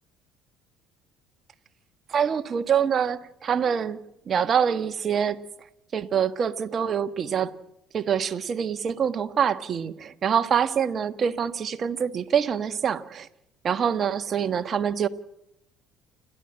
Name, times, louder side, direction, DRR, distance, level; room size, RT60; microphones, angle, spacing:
voice 1, 2.1-4.0 4.3-5.4 5.9-7.5 7.9-13.3 13.6-15.1, right 7 dB, 45° right, 1.4 m, -25 dB
29.5 x 11.0 x 8.8 m
hypercardioid pair, 65°, 0 cm